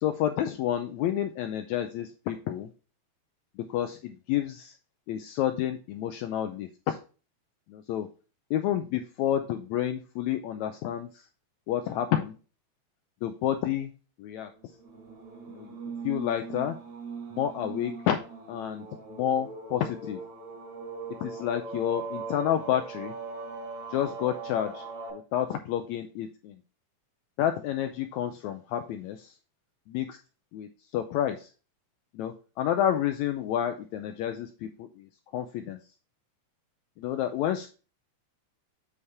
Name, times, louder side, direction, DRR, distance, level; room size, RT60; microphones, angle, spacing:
voice 1, 0.0-2.7 3.6-4.8 5.1-7.0 7.7-8.1 8.5-11.3 11.7-12.3 13.2-13.9 14.2-14.5 15.5-15.8 16.0-16.8 17.3-18.2 18.5-20.2 21.2-23.1 23.9-24.9 25.1-26.6 27.4-29.3 29.9-30.2 30.5-31.5 32.1-35.8 37.0-37.7, left 11 dB, 80° left, 7 dB, 1.7 m, -30 dB
sound 1, 14.8-25.1, right 4 dB, 45° right, 5.0 m, -40 dB
8.0 x 5.6 x 3.4 m, 0.35 s
omnidirectional pair, 3.6 m